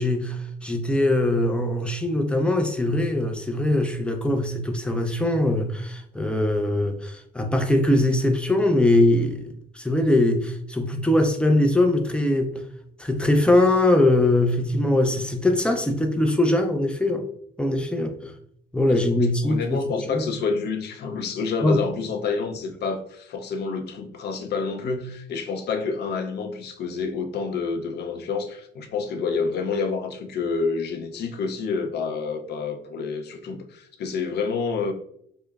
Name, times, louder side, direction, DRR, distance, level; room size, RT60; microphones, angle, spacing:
voice 1, 0.0-12.5 13.0-17.3 17.6-18.3 18.7-19.8 20.1-20.3 21.6-21.8, left 1 dB, 5° left, 0.4 m, -22 dB
voice 2, 19.4-34.9, left 4 dB, 65° left, 0.5 m, -28 dB
5.2 x 2.1 x 2.3 m
cardioid pair, 130°, 18 cm